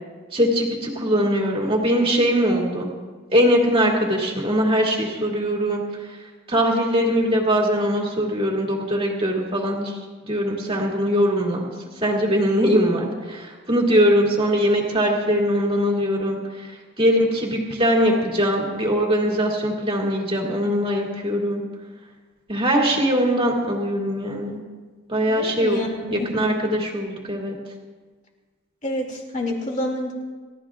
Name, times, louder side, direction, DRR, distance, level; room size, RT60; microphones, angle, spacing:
voice 1, 0.3-2.9 3.3-5.8 6.5-9.9 10.3-11.7 12.0-16.7 17.0-21.6 22.5-24.6 25.1-25.8 26.1-27.5, equal, 25° right, -2 dB, 2.7 m, -21 dB
voice 2, 25.3-26.3 28.8-30.1, left 1 dB, 35° left, 0 dB, 2.6 m, -28 dB
29.5 x 14.0 x 2.5 m, 1.4 s
head